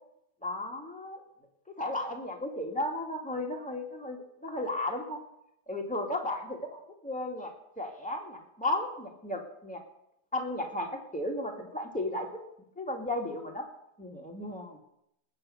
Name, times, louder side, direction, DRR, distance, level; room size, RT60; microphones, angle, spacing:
voice 1, 0.4-1.2 1.8-5.2 5.7-9.8 10.3-12.4 12.8-13.7 14.0-14.8, left 1 dB, 5° left, 0 dB, 2.2 m, -34 dB
19.5 x 6.7 x 8.0 m, 0.78 s
omnidirectional pair, 2.2 m